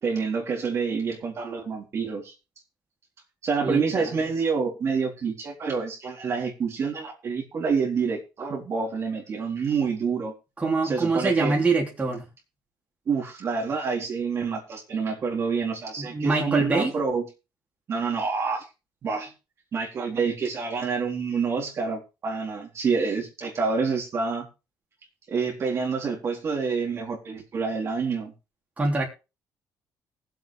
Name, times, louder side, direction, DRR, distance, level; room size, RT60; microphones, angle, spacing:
voice 1, 0.0-2.3 3.4-10.3 10.8-11.6 13.1-17.3 17.9-18.6 19.0-19.3 19.7-24.5 25.3-28.3, right 5 dB, 45° right, 3.9 m, -27 dB
voice 2, 3.6-4.2 10.6-12.3 16.0-16.9 28.8-29.1, right 3 dB, 20° right, 3.7 m, -24 dB
19.5 x 8.0 x 3.5 m
cardioid pair, 120°, 7 cm